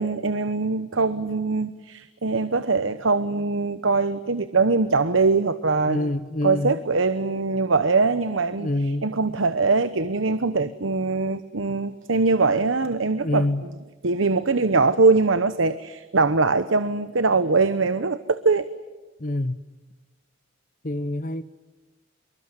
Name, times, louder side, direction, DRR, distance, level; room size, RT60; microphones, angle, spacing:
voice 1, 0.0-6.1 6.4-8.7 9.0-13.5 14.0-18.7, right 3 dB, 80° right, 12 dB, 1.0 m, -22 dB
voice 2, 5.9-6.8 8.6-9.1 13.2-13.6 19.2-19.5 20.8-21.4, left 1 dB, 40° left, 14 dB, 1.0 m, -26 dB
26.5 x 23.5 x 9.6 m, 1.2 s
head